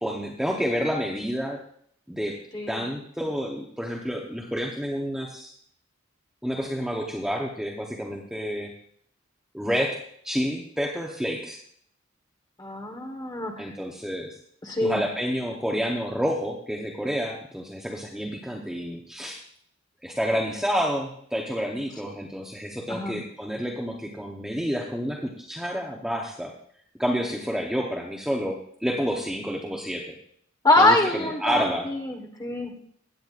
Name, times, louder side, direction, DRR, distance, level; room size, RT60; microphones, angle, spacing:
voice 1, 0.0-1.6 2.1-2.4 2.7-5.5 6.4-8.7 9.5-10.0 10.2-11.6 13.6-14.4 14.8-19.4 20.0-26.5 27.0-30.2 30.8-31.9, equal, 5° right, -1 dB, 0.8 m, -29 dB
voice 2, 2.5-2.8 12.6-13.7 14.6-15.0 22.9-23.2 30.6-32.7, left 2 dB, 20° left, 2 dB, 1.3 m, -24 dB
16.0 x 9.0 x 2.5 m, 0.64 s
head